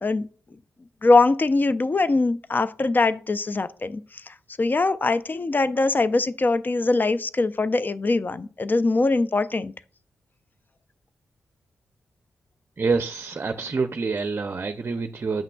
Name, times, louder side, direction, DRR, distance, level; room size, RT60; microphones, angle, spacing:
voice 1, 1.0-9.7, left 3 dB, 35° left, 0.5 m, -22 dB
voice 2, 12.8-15.4, right 4 dB, 45° right, 0.5 m, -27 dB
8.9 x 5.8 x 2.3 m
supercardioid pair, 45°, 5 cm